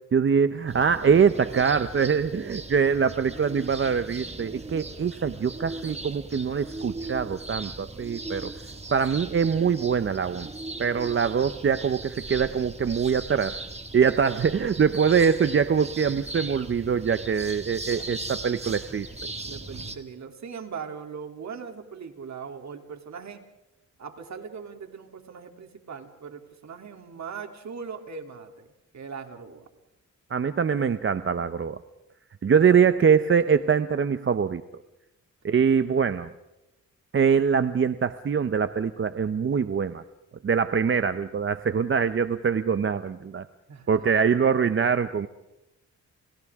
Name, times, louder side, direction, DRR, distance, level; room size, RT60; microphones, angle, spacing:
voice 1, 0.1-8.5 8.9-10.5 10.8-13.6 13.9-19.3 30.3-31.8 32.4-34.6 35.4-36.3 37.1-40.0 40.4-43.4 43.9-45.3, right 6 dB, 40° right, 11 dB, 0.8 m, -23 dB
sound 1, 0.7-20.0, right 2 dB, 20° right, 2.1 m, -38 dB
voice 2, 19.4-23.4 24.0-28.7 28.9-29.7 43.7-44.2, right 6 dB, 65° right, 4 dB, 3.1 m, -40 dB
29.5 x 29.5 x 3.7 m, 0.94 s
cardioid pair, 85°, 30 cm